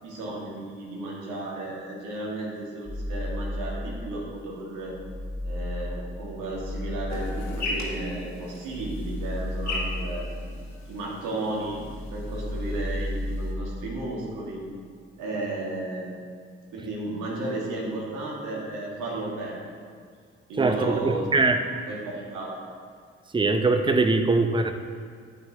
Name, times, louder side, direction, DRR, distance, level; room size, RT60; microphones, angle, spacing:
voice 1, 0.0-5.0 5.4-10.3 10.9-11.8 12.1-14.6 15.2-16.2 16.7-19.7 20.5-21.2 21.9-22.5, right 2 dB, 65° right, -3 dB, 2.0 m, -33 dB
sound 1, 2.9-4.3 4.7-11.2 11.5-13.8, left 1 dB, 15° left, 0.9 m, -34 dB
sound 2, 7.1-13.5, left 2 dB, 55° left, 1.9 m, -38 dB
voice 2, 20.6-21.6 23.3-24.7, right 3 dB, 15° right, 7 dB, 0.8 m, -22 dB
10.0 x 8.5 x 2.9 m, 2.1 s
figure-of-eight pair, 40°, 33 cm